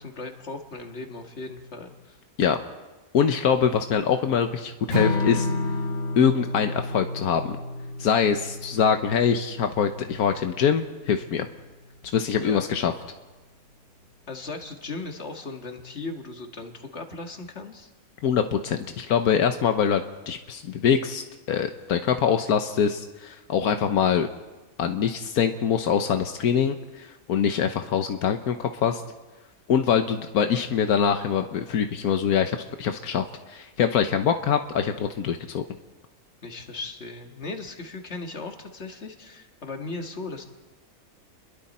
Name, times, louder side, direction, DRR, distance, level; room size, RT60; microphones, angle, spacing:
voice 1, 0.0-2.2 12.4-12.7 14.3-17.9 36.4-40.4, left 3 dB, 50° left, 4 dB, 2.1 m, -37 dB
voice 2, 3.1-5.5 6.2-7.6 8.0-11.5 12.1-12.9 18.2-24.3 24.8-29.0 29.7-35.6, left 7 dB, 85° left, 7 dB, 1.4 m, -24 dB
Strum, 4.9-11.2, left 2 dB, 60° right, 6.5 m, -31 dB
30.0 x 22.0 x 4.3 m, 1.2 s
omnidirectional pair, 1.5 m